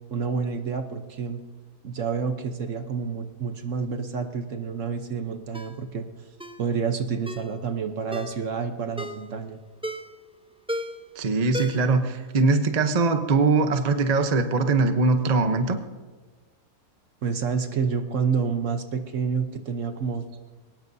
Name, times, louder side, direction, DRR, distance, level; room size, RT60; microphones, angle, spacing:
voice 1, 0.1-1.4 1.8-6.1 6.6-9.6 17.2-20.2, right 6 dB, 55° right, 7 dB, 1.1 m, -28 dB
Ringtone, 5.5-5.8 6.4-6.6 7.3-7.5 8.1-8.4 9.0-9.3 9.8-10.2 10.7-11.1 11.5-12.0 12.3-12.4, equal, 10° right, 0.3 m, -34 dB
voice 2, 11.2-15.8, right 3 dB, 35° right, 7 dB, 0.7 m, -22 dB
22.0 x 19.0 x 2.7 m, 1.3 s
omnidirectional pair, 1.7 m